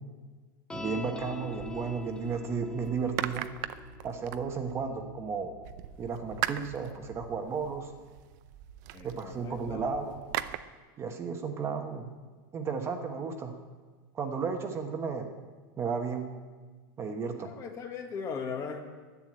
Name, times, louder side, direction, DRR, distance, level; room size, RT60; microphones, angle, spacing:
sound 1, 0.7-7.4, left 3 dB, 5° left, 0.8 m, -45 dB
voice 1, 0.7-3.5 4.0-5.5 6.0-7.9 9.0-10.2 11.0-12.1 12.5-13.5 14.1-15.3 15.8-16.3 17.0-17.5, right 5 dB, 25° right, 5 dB, 1.1 m, -33 dB
sound 2, 1.2-2.4 2.8-5.0 5.6-10.6, right 14 dB, 55° right, 0.6 m, -40 dB
voice 2, 8.9-9.9 17.3-18.8, left 6 dB, 30° left, 4 dB, 1.5 m, -38 dB
10.5 x 8.7 x 8.8 m, 1.4 s
supercardioid pair, 150°, 11 cm